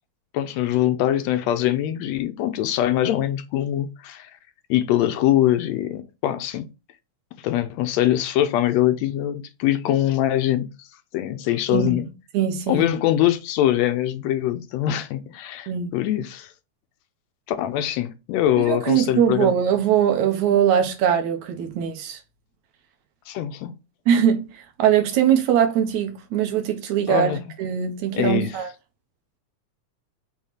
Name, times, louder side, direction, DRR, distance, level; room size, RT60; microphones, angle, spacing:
voice 1, 0.3-4.3 4.7-6.7 7.4-10.9 11.1-12.1 12.7-16.5 17.5-19.5 23.3-23.7 27.1-27.4 28.1-28.6, left 12 dB, 80° left, 1.7 m, -23 dB
voice 2, 12.3-12.9 15.7-15.9 18.6-22.2 24.1-28.7, right 9 dB, 80° right, 2.5 m, -21 dB
6.4 x 3.6 x 4.2 m
omnidirectional pair, 3.3 m